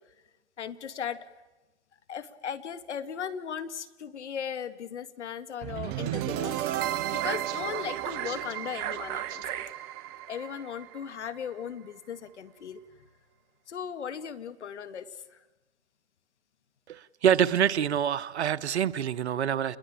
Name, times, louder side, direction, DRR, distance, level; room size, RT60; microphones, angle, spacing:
voice 1, 0.6-1.3 2.1-6.6 7.1-9.6 10.3-12.8 13.7-15.4, left 8 dB, 75° left, 13 dB, 2.0 m, -37 dB
sound 1, 5.6-11.7, right 12 dB, 30° right, 1.0 m, -33 dB
voice 2, 16.9-19.8, right 9 dB, 70° right, 12 dB, 1.2 m, -26 dB
29.5 x 21.0 x 8.8 m, 1.1 s
hypercardioid pair, 135°, 35 cm